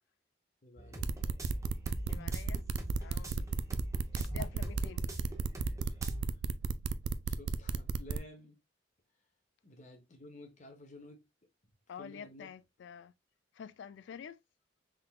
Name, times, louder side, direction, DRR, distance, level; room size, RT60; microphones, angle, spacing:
voice 1, 0.6-1.1 5.8-6.0 6.3-6.4 7.3-8.6 9.6-11.3 11.9-12.5, left 2 dB, 40° left, 1.0 m, -53 dB
SQ Never Satisfied Music, 0.8-6.2, right 1 dB, 15° right, 0.7 m, -42 dB
sound 1, 1.0-8.2, right 5 dB, 65° right, 0.3 m, -33 dB
voice 2, 2.1-2.7 3.0-3.4 4.1-5.1 11.9-13.1 13.6-14.4, left 7 dB, 65° left, 0.3 m, -48 dB
3.8 x 3.6 x 2.2 m
head